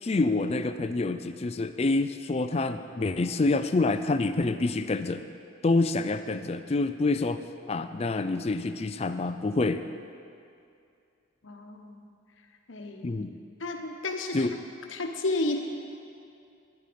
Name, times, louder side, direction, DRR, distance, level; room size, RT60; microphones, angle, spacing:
voice 1, 0.0-5.3 5.6-9.8 13.0-13.4 14.3-14.6, left 3 dB, 30° left, 10 dB, 0.4 m, -27 dB
voice 2, 11.4-12.1 12.7-13.2 13.6-14.5 14.9-15.6, left 2 dB, 75° left, 3 dB, 1.1 m, -32 dB
11.5 x 10.5 x 5.2 m, 2.5 s
head